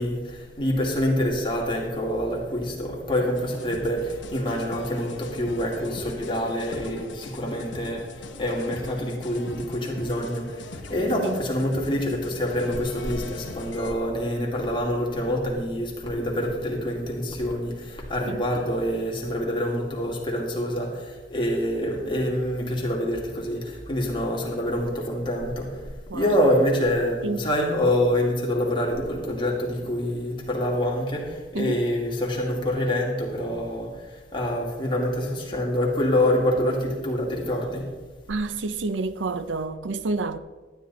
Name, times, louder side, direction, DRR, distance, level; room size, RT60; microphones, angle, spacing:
voice 1, 0.0-37.9, equal, 25° left, 2.3 m, -26 dB
sound 1, 3.4-13.9, left 2 dB, 75° left, 1.1 m, -41 dB
voice 2, 38.3-40.4, right 3 dB, 80° right, 0.6 m, -29 dB
12.0 x 10.5 x 4.1 m
head